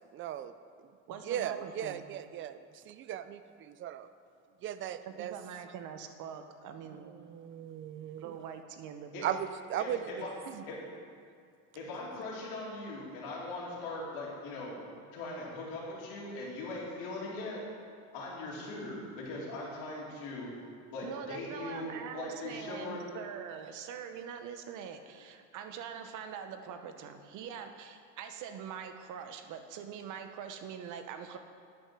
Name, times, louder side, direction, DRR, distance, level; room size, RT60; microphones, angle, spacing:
voice 1, 0.1-0.5 0.8-0.9 1.2-4.1 4.6-5.3 6.9-8.3 9.2-10.3, right 10 dB, 35° right, 12 dB, 0.4 m, -38 dB
voice 2, 1.1-2.0 5.0-7.1 8.2-9.4 10.5-10.6 21.0-31.4, right 7 dB, 55° right, 7 dB, 0.9 m, -43 dB
voice 3, 9.8-10.3 10.7-10.8 11.7-14.8 15.1-17.6 18.1-20.5 20.9-23.0, left 2 dB, 70° left, -5 dB, 2.6 m, -40 dB
9.3 x 5.5 x 6.1 m, 2.2 s
supercardioid pair, 115°, 36 cm